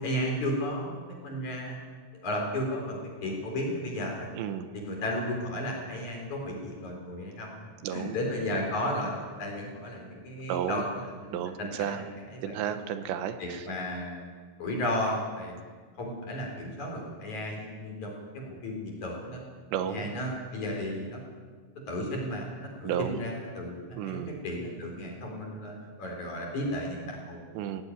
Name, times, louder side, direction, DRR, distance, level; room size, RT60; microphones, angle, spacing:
voice 1, 0.0-1.8 2.2-4.3 4.7-7.5 7.9-12.6 13.4-14.3 14.6-15.6 16.0-19.4 19.9-21.2 21.9-27.4, left 1 dB, 45° left, 1 dB, 5.1 m, -34 dB
voice 2, 4.3-4.7 7.8-8.2 10.5-10.8 11.3-12.0 12.4-13.7 19.7-20.2 22.8-23.2 23.9-24.4 27.5-27.8, right 9 dB, 85° right, 9 dB, 3.3 m, -32 dB
17.5 x 15.5 x 9.6 m, 1.5 s
omnidirectional pair, 5.0 m